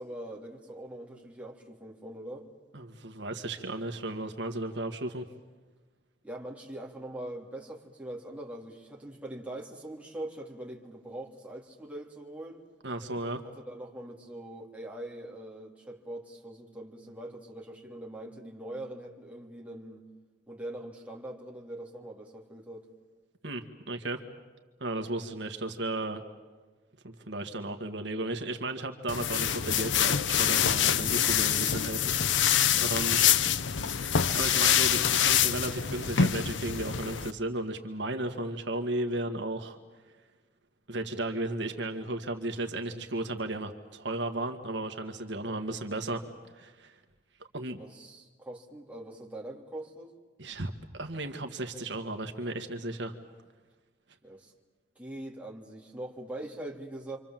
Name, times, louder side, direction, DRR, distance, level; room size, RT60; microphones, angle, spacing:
voice 1, 0.0-2.5 6.2-12.6 13.5-20.0 20.5-22.9 32.7-32.9 47.7-50.2 54.2-54.5 54.9-57.2, right 1 dB, 10° right, -1 dB, 3.4 m, -42 dB
voice 2, 2.7-5.3 12.8-13.4 23.4-24.2 24.8-26.2 27.0-33.2 34.1-39.8 40.9-46.2 46.5-47.0 47.5-47.8 50.4-53.1, right 2 dB, 70° right, 6 dB, 1.8 m, -34 dB
sound 1, 29.1-37.3, left 9 dB, 80° left, 0.8 m, -25 dB
28.5 x 25.5 x 7.6 m, 1.3 s
head